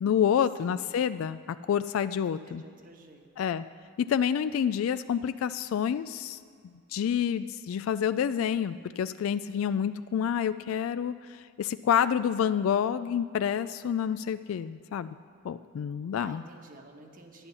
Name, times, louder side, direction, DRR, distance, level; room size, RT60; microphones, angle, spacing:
voice 1, 0.0-2.6 3.4-3.6 4.0-6.4 6.9-15.2 15.4-16.4, left 8 dB, 75° left, 14 dB, 0.3 m, -28 dB
voice 2, 2.5-3.5 16.1-17.5, right 2 dB, 45° right, 3 dB, 1.3 m, -51 dB
11.5 x 9.8 x 6.9 m, 2.1 s
head